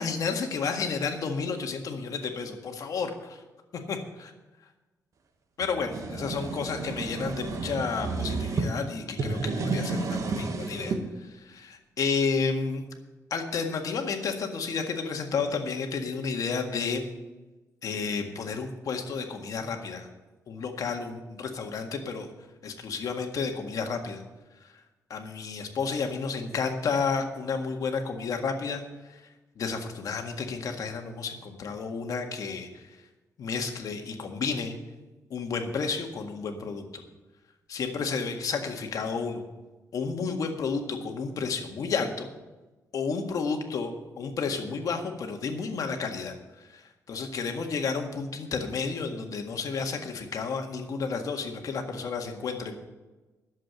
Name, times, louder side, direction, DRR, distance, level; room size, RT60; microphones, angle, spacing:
voice 1, 0.0-3.4 3.9-4.3 5.6-12.8 13.3-17.1 17.8-20.1 20.5-22.3 22.6-24.2 24.6-24.7 25.1-29.2 29.5-32.9 33.4-34.8 35.3-37.0 37.7-39.4 39.9-42.3 42.9-52.8, left 5 dB, 65° left, 4 dB, 1.8 m, -31 dB
sound 1, 5.6-8.7 9.1-11.0, right 3 dB, 55° right, 1.6 m, -31 dB
11.5 x 7.6 x 7.9 m, 1.1 s
cardioid pair, 115°, 7 cm